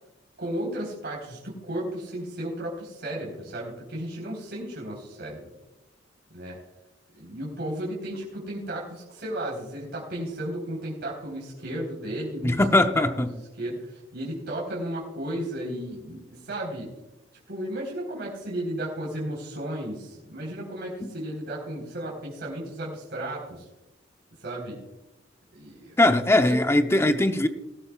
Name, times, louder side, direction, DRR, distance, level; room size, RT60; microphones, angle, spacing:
voice 1, 0.4-5.5 6.3-6.6 7.2-16.9 17.5-23.7 24.4-24.8 25.5-26.0 26.5-26.6, right 1 dB, 60° right, -3 dB, 4.0 m, -34 dB
voice 2, 12.4-13.3 21.0-21.1 26.0-27.5, left 1 dB, 15° left, 8 dB, 0.7 m, -20 dB
19.5 x 12.5 x 2.4 m, 1.0 s
head